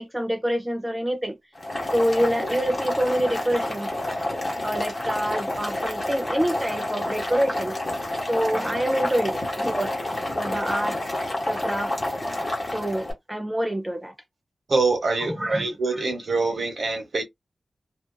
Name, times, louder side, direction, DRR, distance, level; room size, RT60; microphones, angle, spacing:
voice 1, 0.0-1.4 1.9-3.9 4.6-7.8 8.3-9.9 10.4-11.0 11.5-11.9 12.7-14.1 15.3-16.1, equal, 10° right, 0.5 m, -26 dB
Boiling, 1.5-13.1, left 1 dB, 30° left, 1.1 m, -29 dB
voice 2, 14.7-17.2, right 3 dB, 60° right, 0.9 m, -24 dB
2.5 x 2.5 x 2.2 m
wide cardioid pair, 135°, 0 cm